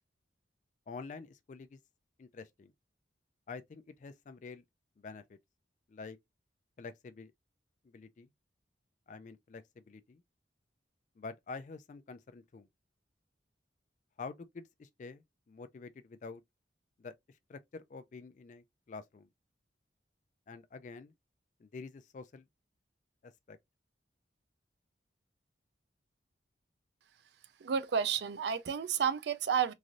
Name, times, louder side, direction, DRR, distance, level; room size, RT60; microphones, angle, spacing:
voice 1, 0.9-1.8 2.2-2.7 3.5-4.6 5.0-5.4 5.9-6.2 6.8-7.3 7.8-8.3 9.1-10.2 11.2-12.7 14.2-16.4 17.0-17.1 17.5-19.3 20.5-21.1 21.6-22.5 23.2-23.6, left 4 dB, 40° left, 0.3 m, -47 dB
voice 2, 27.6-29.7, right 7 dB, 65° right, 0.4 m, -31 dB
3.1 x 2.5 x 2.5 m
head